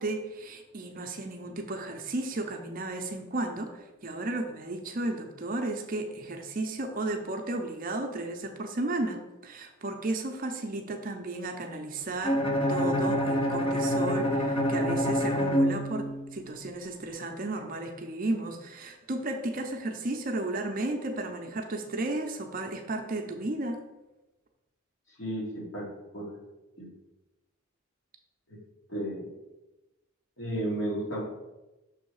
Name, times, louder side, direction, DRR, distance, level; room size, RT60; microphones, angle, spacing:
voice 1, 0.0-3.8 4.0-12.4 12.7-23.8, right 2 dB, 40° right, 4 dB, 0.6 m, -34 dB
Bowed string instrument, 12.2-16.4, equal, 25° left, 0.6 m, -26 dB
voice 2, 25.2-25.8 26.1-26.3 26.8-26.9 28.5-28.6 28.9-29.3 30.4-31.2, right 1 dB, 65° left, -5 dB, 2.2 m, -33 dB
6.2 x 3.4 x 4.7 m, 1.0 s
head